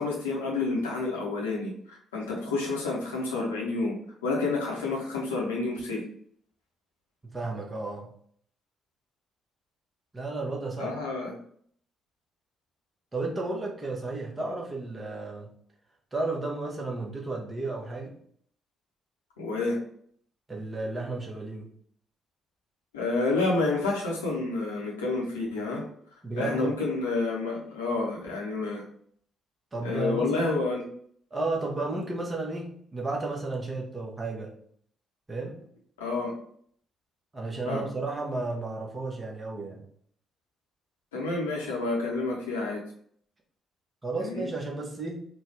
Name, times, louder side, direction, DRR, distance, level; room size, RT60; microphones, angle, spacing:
voice 1, 0.0-1.7 2.1-4.0 4.2-6.0 10.8-11.4 19.4-19.8 22.9-25.8 26.4-28.8 29.8-30.8 36.0-36.3 37.7-37.8 41.1-42.8 44.2-44.5, left 3 dB, 75° left, -3 dB, 0.8 m, -29 dB
voice 2, 7.2-8.1 10.1-10.9 13.1-15.5 16.1-18.2 20.5-21.7 26.2-26.8 29.7-30.6 31.3-34.5 35.3-35.6 37.3-39.8 44.0-45.2, right 2 dB, 25° right, 0 dB, 1.1 m, -33 dB
4.0 x 2.3 x 3.3 m, 0.62 s
figure-of-eight pair, 40°, 0 cm